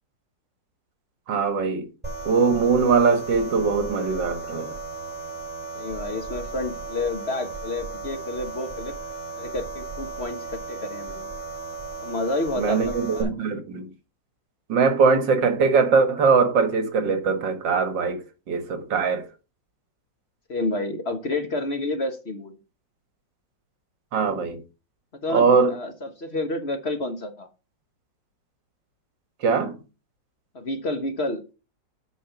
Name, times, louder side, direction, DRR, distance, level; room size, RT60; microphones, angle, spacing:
voice 1, 1.3-1.9 2.3-4.7 12.6-13.9 14.7-19.3 24.1-24.6 25.3-25.7 29.4-29.8, right 5 dB, 80° right, 2.2 m, -21 dB
sound 1, 2.0-13.2, right 3 dB, 5° right, 4.7 m, -35 dB
voice 2, 5.7-8.9 9.4-11.3 12.0-13.3 20.5-22.6 25.2-27.5 30.5-31.4, left 2 dB, 40° left, 1.2 m, -30 dB
8.4 x 5.4 x 6.9 m
omnidirectional pair, 2.0 m